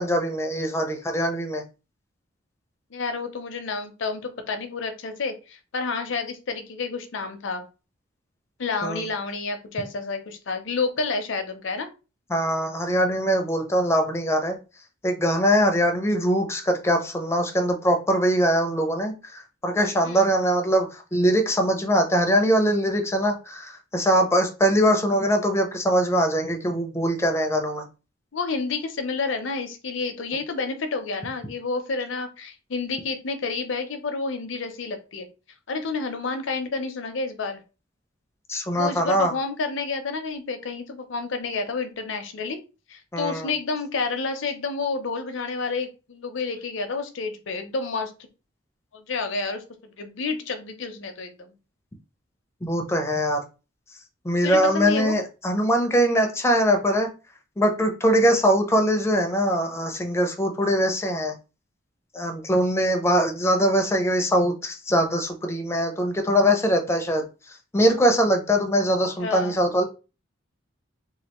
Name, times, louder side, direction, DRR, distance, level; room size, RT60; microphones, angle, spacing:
voice 1, 0.0-1.6 8.8-9.0 12.3-14.6 15.0-27.8 38.5-39.3 43.1-43.5 52.6-53.4 54.2-57.1 57.6-61.4 62.1-69.8, equal, 15° left, 4 dB, 0.5 m, -22 dB
voice 2, 2.9-7.6 8.6-11.9 20.0-20.2 28.3-35.3 35.7-37.6 38.7-42.6 42.9-48.1 48.9-51.5 54.4-55.1 69.2-69.6, left 4 dB, 70° left, 7 dB, 0.6 m, -29 dB
3.1 x 2.4 x 2.9 m, 0.31 s
head